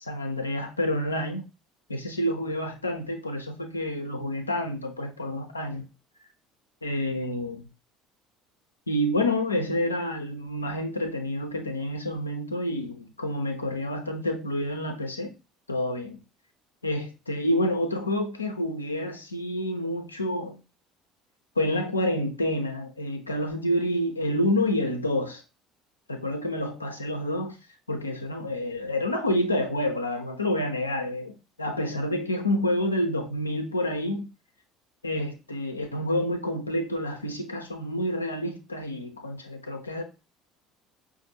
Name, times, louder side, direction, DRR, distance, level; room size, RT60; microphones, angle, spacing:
voice 1, 0.0-1.5 1.9-5.9 6.8-7.7 8.9-15.3 15.7-16.2 16.8-20.6 21.6-25.4 26.1-27.6 27.9-31.3 31.6-34.3 35.0-40.0, left 1 dB, 90° left, 0.5 m, -28 dB
5.0 x 2.5 x 2.7 m
figure-of-eight pair, 60°, 0 cm